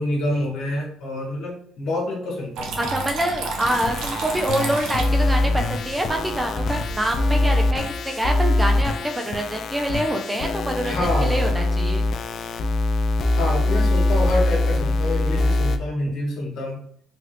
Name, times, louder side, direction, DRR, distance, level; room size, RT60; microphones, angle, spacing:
voice 1, 0.0-2.7 10.8-11.5 13.3-16.8, left 1 dB, 65° left, -1 dB, 1.1 m, -27 dB
Water tap faucet / Trickle dribble, 2.6-7.5, right 4 dB, 80° right, 0.6 m, -33 dB
voice 2, 2.8-12.0, right 1 dB, 10° right, 3 dB, 0.5 m, -26 dB
sound 1, 3.6-15.8, left 2 dB, 50° left, 0.3 m, -23 dB
3.1 x 2.3 x 3.1 m, 0.65 s
cardioid pair, 105°, 0 cm